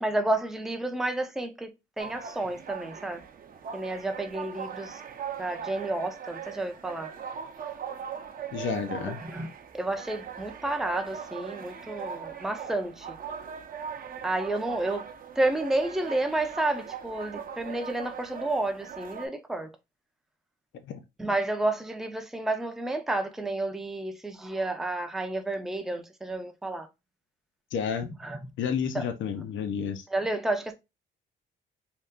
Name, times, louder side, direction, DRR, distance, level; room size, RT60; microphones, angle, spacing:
voice 1, 0.0-1.7 2.0-3.2 3.7-5.0 5.4-7.1 9.0-9.5 9.7-13.2 14.2-15.0 15.4-19.7 21.2-26.9 28.0-28.4 28.9-29.0 30.1-30.7, right 2 dB, ahead, 0.5 m, -30 dB
sound 1, 2.0-19.3, right 7 dB, 45° right, 0.6 m, -40 dB
voice 2, 8.5-9.2 20.8-21.0 27.7-28.1 28.6-30.0, left 7 dB, 70° left, 0.7 m, -30 dB
2.8 x 2.4 x 3.5 m
cardioid pair, 90°, 20 cm